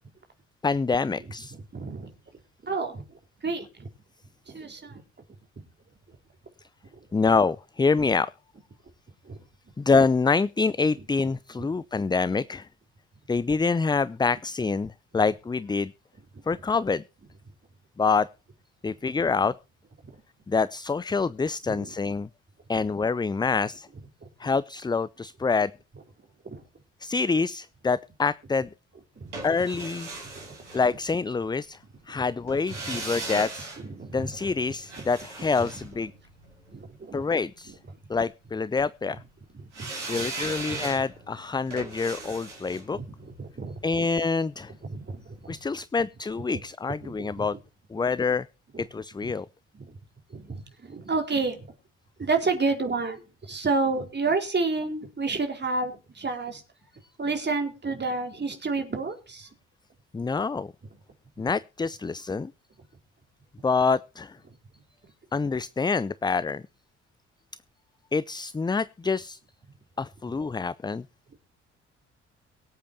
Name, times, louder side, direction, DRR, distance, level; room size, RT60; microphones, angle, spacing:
voice 1, 0.6-1.6 7.1-8.3 9.8-12.7 13.3-15.9 16.5-17.0 18.0-18.3 18.8-19.5 20.5-22.3 22.7-23.9 24.4-25.7 27.0-28.7 29.4-30.1 30.7-31.8 32.1-33.7 34.1-36.1 37.1-37.8 38.1-39.2 40.1-43.0 43.8-44.7 45.5-47.6 47.9-48.5 48.8-49.5 60.1-60.7 61.4-62.5 63.6-64.4 65.3-66.6 68.1-69.4 70.0-71.0, left 4 dB, 10° left, 18 dB, 0.5 m, -26 dB
voice 2, 1.7-2.1 2.6-3.9 4.5-5.0 6.9-7.1 9.2-9.4 11.6-11.7 21.7-22.0 24.2-24.5 26.4-26.6 29.2-29.4 32.1-32.2 32.7-33.0 33.8-34.3 35.0-35.1 36.7-37.3 37.7-37.8 39.5-40.2 40.7-40.8 42.9-44.0 44.9-45.6 47.0-47.6 48.7-48.8 49.2-49.3 49.7-50.0 50.3-51.7 52.2-56.6 57.2-59.5, right 3 dB, 30° right, 4 dB, 4.4 m, -31 dB
sound 1, 29.3-31.4 32.5-36.7 39.7-44.7 45.0-45.1, right 3 dB, 85° right, 2.6 m, -38 dB
23.5 x 8.5 x 2.9 m, 0.32 s
figure-of-eight pair, 45°, 35 cm